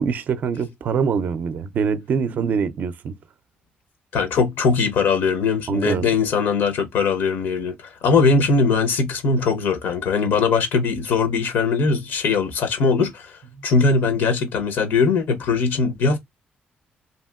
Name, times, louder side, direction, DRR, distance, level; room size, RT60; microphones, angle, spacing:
voice 1, 0.0-3.1 5.7-6.0 13.5-13.7, right 6 dB, 50° right, 0.4 m, -24 dB
voice 2, 4.1-16.2, left 4 dB, 80° left, 0.7 m, -20 dB
2.8 x 2.7 x 2.2 m
cardioid pair, 140°, 4 cm